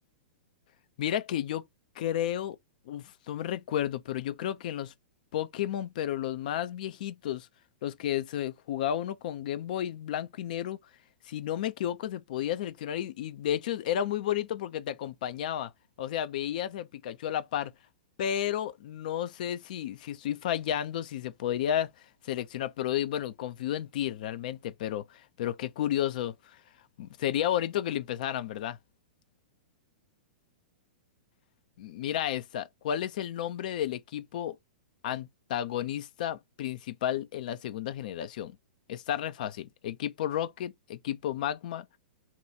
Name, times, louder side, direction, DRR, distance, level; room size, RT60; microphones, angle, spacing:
voice 1, 1.0-1.7 2.0-2.6 2.9-4.9 5.3-7.5 7.8-10.8 11.3-15.7 16.0-17.7 18.2-21.9 22.2-26.3 27.0-28.8 31.8-34.6 35.0-38.5 38.9-41.9, left 11 dB, 60° left, 0.5 m, -32 dB
2.9 x 2.3 x 4.0 m
hypercardioid pair, 115°, 5 cm